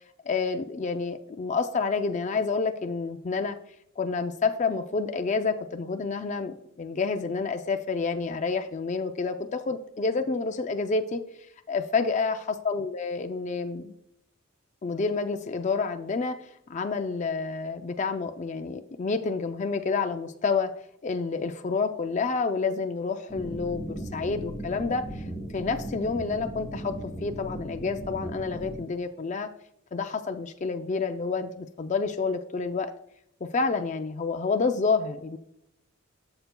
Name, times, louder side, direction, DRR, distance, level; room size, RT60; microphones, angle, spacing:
voice 1, 0.3-3.6 4.0-11.2 11.7-12.4 12.6-13.9 14.8-16.4 16.7-20.7 21.0-25.3 25.5-26.9 27.2-29.5 29.9-32.9 33.5-35.4, left 4 dB, 35° left, 7 dB, 0.4 m, -29 dB
sound 1, 23.3-28.8, right 1 dB, 5° right, 2.8 m, -37 dB
12.0 x 6.7 x 2.2 m, 0.79 s
head